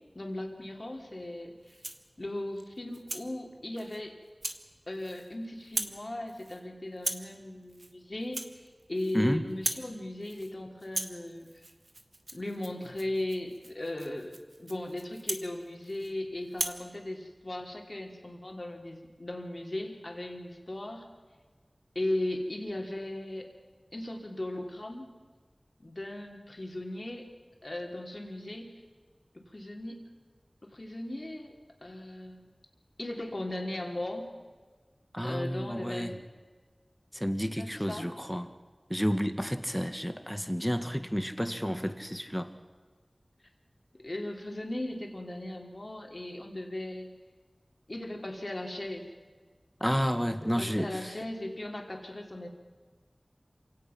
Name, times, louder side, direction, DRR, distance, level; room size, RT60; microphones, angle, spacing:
voice 1, 0.1-1.8 2.2-4.2 4.9-11.7 12.3-14.3 14.6-21.0 21.9-23.5 23.9-25.1 25.8-27.3 27.6-28.8 29.3-30.1 30.6-31.5 31.8-32.4 33.0-34.3 35.2-36.2 37.6-38.1 44.0-47.1 47.9-49.1 50.4-52.5, left 1 dB, 50° left, 2 dB, 3.2 m, -37 dB
Rattle (instrument), 1.6-2.1 2.6-3.3 3.8-4.0 4.4-4.6 4.9-5.4 5.6-6.0 6.3-6.6 7.0-7.3 7.7-7.9 8.2-9.2 9.5-9.9 10.2-10.5 10.8-16.1 16.5-16.8, right 2 dB, 70° right, 1.5 m, -38 dB
voice 2, 35.1-36.1 37.1-38.5 38.9-42.5 49.8-50.9, equal, ahead, 9 dB, 1.7 m, -30 dB
27.5 x 17.5 x 5.9 m, 1.4 s
wide cardioid pair, 55°, 0 cm